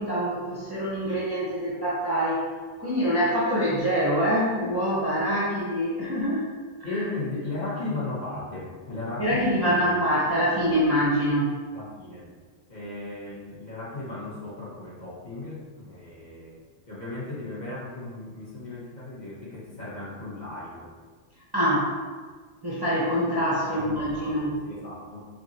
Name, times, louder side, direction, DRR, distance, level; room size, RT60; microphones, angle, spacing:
voice 1, 0.0-2.5 2.8-6.4 6.9-7.0 9.2-11.5 21.5-21.9 22.6-24.5, equal, 25° right, -8 dB, 0.6 m, -25 dB
voice 2, 6.8-9.9 11.7-12.3 12.7-16.6 16.9-20.9 23.7-24.4 24.6-25.3, left 2 dB, 40° left, -8 dB, 1.2 m, -36 dB
4.9 x 3.0 x 2.8 m, 1.5 s
omnidirectional pair, 1.2 m